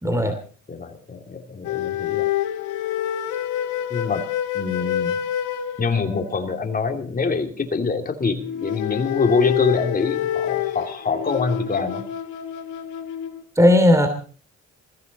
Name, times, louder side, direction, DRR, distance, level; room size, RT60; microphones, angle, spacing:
voice 1, 0.0-0.4 13.5-14.1, left 1 dB, 10° right, 8 dB, 2.9 m, -16 dB
voice 2, 0.7-2.3 3.9-4.2 4.5-5.2 5.8-12.0, left 4 dB, 30° left, 4 dB, 2.9 m, -25 dB
sound 1, 1.6-6.4 8.4-13.4, left 11 dB, 90° left, 2.1 m, -27 dB
20.5 x 15.5 x 4.2 m, 0.41 s
cardioid pair, 90°, 30 cm